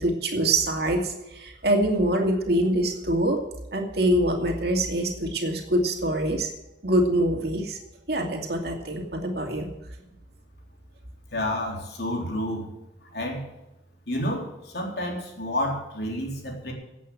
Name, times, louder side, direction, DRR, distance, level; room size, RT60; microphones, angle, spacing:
voice 1, 0.0-3.4 3.7-6.5 6.8-7.8 8.1-9.7, right 1 dB, 55° right, 2 dB, 2.5 m, -24 dB
voice 2, 11.3-12.7 13.1-13.5 14.1-16.7, left 1 dB, 60° left, 0 dB, 3.9 m, -30 dB
16.5 x 8.4 x 6.2 m, 0.95 s
head